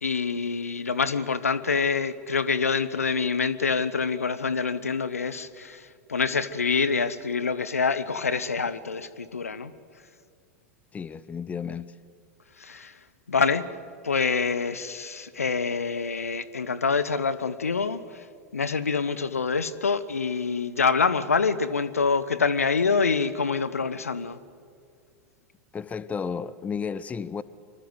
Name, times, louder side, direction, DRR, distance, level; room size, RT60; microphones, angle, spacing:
voice 1, 0.0-9.7 12.6-12.9 13.3-13.7 14.0-18.2 18.5-24.4, left 5 dB, 85° left, 1.0 m, -26 dB
voice 2, 10.9-11.9 25.7-27.4, left 6 dB, 20° left, 0.8 m, -32 dB
26.0 x 24.5 x 8.1 m
figure-of-eight pair, 90°, 8 cm